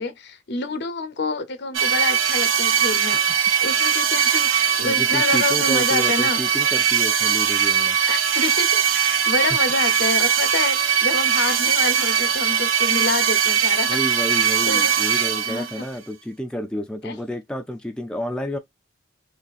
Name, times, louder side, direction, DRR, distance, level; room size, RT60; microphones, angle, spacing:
voice 1, 0.0-6.4 7.7-14.0 14.7-14.9 15.5-15.9 17.0-17.2, left 3 dB, 55° left, 0.7 m, -28 dB
sound 1, 1.7-15.8, right 8 dB, 85° right, 0.8 m, -20 dB
voice 2, 4.8-8.0 13.9-18.6, equal, 5° left, 0.4 m, -30 dB
4.1 x 2.8 x 2.4 m
head